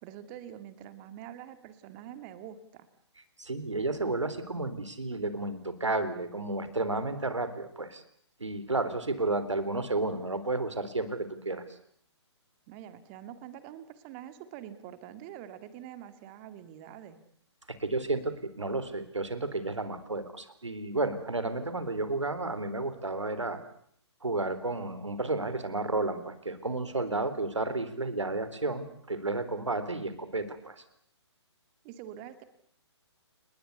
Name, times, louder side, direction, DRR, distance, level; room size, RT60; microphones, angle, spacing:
voice 1, 0.0-2.9 12.7-17.2 31.8-32.4, right 10 dB, 30° right, 11 dB, 2.2 m, -45 dB
voice 2, 3.4-8.0 8.4-11.6 17.7-23.6 24.2-30.8, right 2 dB, 85° right, 12 dB, 3.9 m, -32 dB
29.5 x 20.5 x 8.3 m, 0.65 s
figure-of-eight pair, 135°, 15 cm